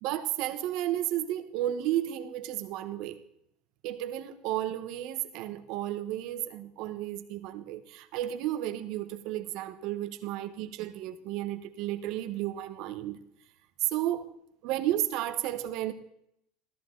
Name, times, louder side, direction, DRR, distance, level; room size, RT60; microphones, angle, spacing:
voice 1, 0.0-3.2 3.8-13.2 13.8-14.2 14.6-15.9, right 13 dB, 45° right, 9 dB, 1.2 m, -33 dB
18.0 x 14.0 x 3.9 m, 0.73 s
cardioid pair, 175°, 0 cm